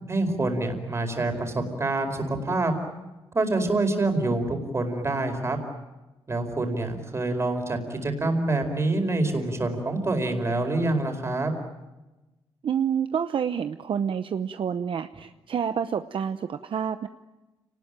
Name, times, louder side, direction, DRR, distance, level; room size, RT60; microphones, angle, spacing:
voice 1, 0.1-2.7 3.3-5.6 6.3-11.5, right 2 dB, 25° right, 5 dB, 4.7 m, -26 dB
voice 2, 12.6-17.1, right 8 dB, 60° right, 10 dB, 0.9 m, -28 dB
30.0 x 19.5 x 9.1 m, 1.1 s
wide cardioid pair, 140°, 10 cm